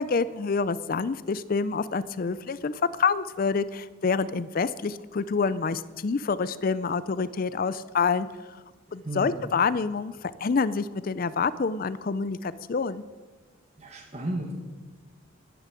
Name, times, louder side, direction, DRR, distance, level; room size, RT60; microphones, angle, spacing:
voice 1, 0.0-8.3 8.9-13.0, left 5 dB, 45° left, 16 dB, 0.4 m, -27 dB
voice 2, 13.8-14.6, right 1 dB, 30° right, -1 dB, 1.6 m, -33 dB
11.5 x 10.5 x 7.6 m, 1.3 s
head